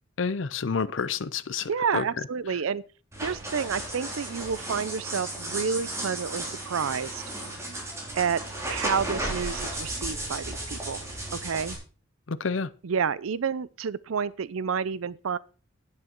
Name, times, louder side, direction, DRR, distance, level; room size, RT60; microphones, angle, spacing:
voice 1, 0.2-2.0 12.3-12.7, left 5 dB, 65° left, 0.6 m, -29 dB
voice 2, 1.7-2.8 3.2-7.2 8.1-8.4 8.7-11.8 12.8-15.4, right 6 dB, 90° right, 0.5 m, -29 dB
sound 1, 3.1-11.7, right 1 dB, 15° right, 3.7 m, -34 dB
10.5 x 8.6 x 4.5 m
head